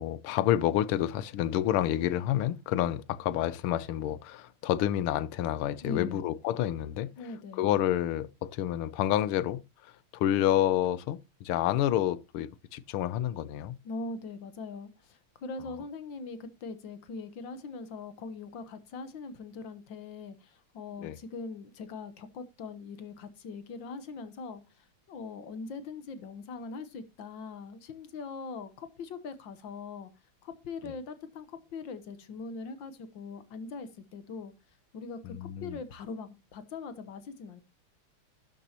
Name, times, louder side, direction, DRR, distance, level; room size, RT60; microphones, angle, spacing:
voice 1, 0.0-7.1 7.6-13.8 21.0-21.2 35.2-35.7, left 12 dB, 90° left, 1.6 m, -29 dB
voice 2, 5.8-6.2 7.2-7.7 13.8-30.1 30.4-34.5 34.9-37.6, left 4 dB, 65° left, 1.7 m, -41 dB
12.0 x 9.2 x 2.9 m
omnidirectional pair, 2.3 m